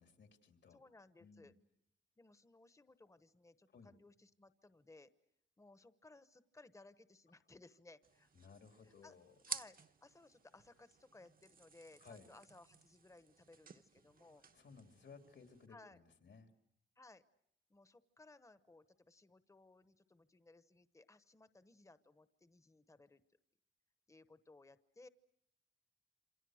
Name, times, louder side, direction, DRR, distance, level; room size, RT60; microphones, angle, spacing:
voice 1, 0.0-0.8 1.2-1.5 3.7-3.9 8.3-9.3 12.0-12.3 14.5-16.5, left 5 dB, 80° left, 6 dB, 2.9 m, -59 dB
voice 2, 0.7-1.5 2.2-5.1 5.6-8.3 8.8-9.2 9.5-14.4 15.7-16.0 17.0-17.2 17.7-23.2 24.1-25.1, left 2 dB, 15° left, 13 dB, 1.0 m, -62 dB
sound 1, 8.0-15.7, right 6 dB, 50° right, 1.0 m, -53 dB
28.0 x 27.0 x 6.4 m, 0.73 s
wide cardioid pair, 140°, 19 cm